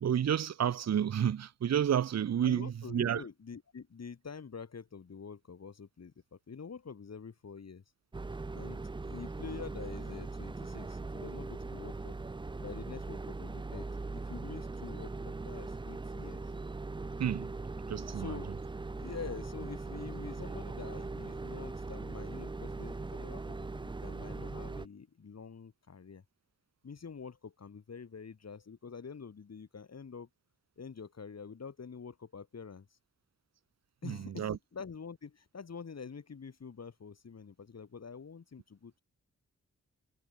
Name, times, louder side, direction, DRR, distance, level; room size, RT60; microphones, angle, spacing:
voice 1, 0.0-3.2 17.2-17.5 17.9-18.3 34.0-34.6, right 9 dB, 60° right, 0.7 m, -30 dB
voice 2, 2.4-7.8 8.5-12.2 12.6-13.9 14.1-16.5 18.1-18.5 18.9-26.2 26.8-30.3 30.8-32.9 34.0-39.0, left 5 dB, 60° left, 3.4 m, -46 dB
sound 1, 8.1-24.9, right 3 dB, 15° right, 0.5 m, -40 dB
wide cardioid pair, 110°, 30 cm